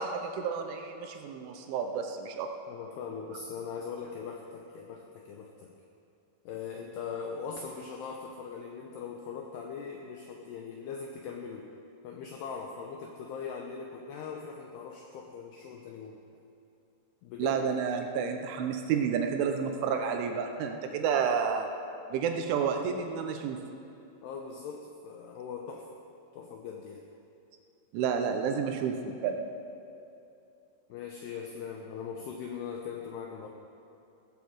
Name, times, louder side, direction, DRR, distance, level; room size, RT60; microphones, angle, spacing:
voice 1, 0.0-2.5 17.4-21.7 22.1-23.6 27.9-29.4, right 6 dB, 80° right, 5 dB, 3.1 m, -30 dB
voice 2, 2.7-5.7 6.5-11.7 12.0-16.2 17.2-17.6 24.2-26.0 26.3-27.1 30.9-33.5, left 6 dB, 85° left, 2 dB, 2.3 m, -40 dB
16.0 x 14.0 x 4.7 m, 2.7 s
omnidirectional pair, 5.8 m